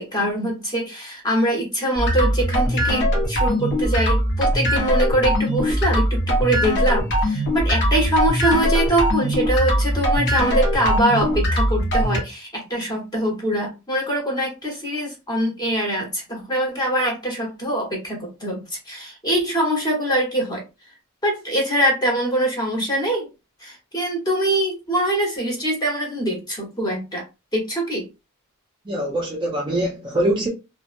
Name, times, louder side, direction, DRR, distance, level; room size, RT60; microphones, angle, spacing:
voice 1, 0.0-18.6 18.9-20.6 21.2-23.3 23.6-27.2 27.5-28.1, right 1 dB, 20° left, 1.0 m, -23 dB
sound 1, 1.9-12.2, equal, 55° left, 0.8 m, -21 dB
voice 2, 28.9-30.5, right 1 dB, 20° right, 0.4 m, -23 dB
2.7 x 2.1 x 2.5 m
head